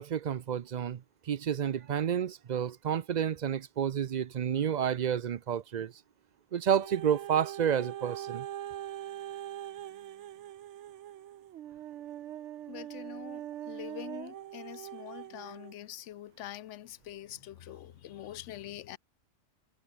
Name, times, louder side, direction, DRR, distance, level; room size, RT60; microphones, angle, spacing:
voice 1, 0.0-5.9 6.5-8.5, right 9 dB, 55° right, 0.5 m, -30 dB
sound 1, 6.7-15.8 16.4-16.5, right 11 dB, 70° right, 1.0 m, -42 dB
voice 2, 12.7-19.0, left 12 dB, 70° left, 1.0 m, -45 dB
omnidirectional pair, 1.3 m